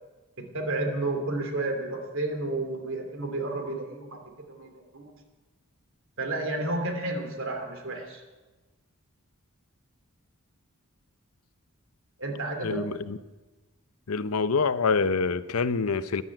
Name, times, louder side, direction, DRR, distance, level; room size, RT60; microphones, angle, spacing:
voice 1, 0.4-4.2 4.5-5.1 6.2-8.2 12.2-12.8, right 2 dB, 60° right, 4 dB, 2.9 m, -31 dB
voice 2, 12.6-13.2 14.1-16.2, left 4 dB, 75° left, 14 dB, 0.7 m, -26 dB
14.0 x 11.0 x 9.0 m, 1.2 s
head